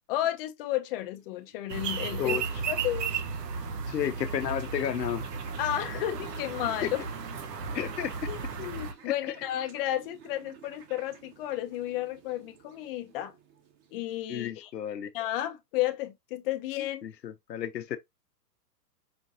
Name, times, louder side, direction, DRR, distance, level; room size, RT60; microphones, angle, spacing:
voice 1, 0.1-2.4 2.7-3.1 5.6-7.0 8.3-13.3 13.9-14.7 15.1-17.0, left 13 dB, 35° left, 0.7 m, -32 dB
sound 1, 1.0-14.4, right 7 dB, 35° right, 1.1 m, -53 dB
sound 2, 1.7-8.9, right 5 dB, 75° right, 1.0 m, -34 dB
voice 2, 3.9-5.2 6.8-6.9 7.7-8.2 14.3-15.1 17.0-18.0, left 9 dB, 90° left, 0.8 m, -32 dB
5.2 x 2.6 x 2.5 m
hypercardioid pair, 125°, 49 cm